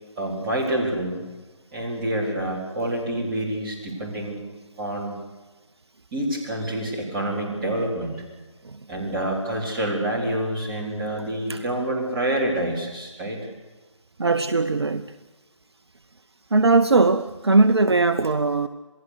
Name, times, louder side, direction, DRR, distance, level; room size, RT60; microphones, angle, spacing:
voice 1, 0.2-1.2 1.7-4.4 4.8-5.2 6.1-8.2 8.9-13.4, right 1 dB, 15° right, -3 dB, 4.4 m, -27 dB
voice 2, 14.2-15.2 16.5-18.7, right 3 dB, 55° right, 11 dB, 0.9 m, -20 dB
28.0 x 19.0 x 6.7 m, 1.3 s
figure-of-eight pair, 155°, 16 cm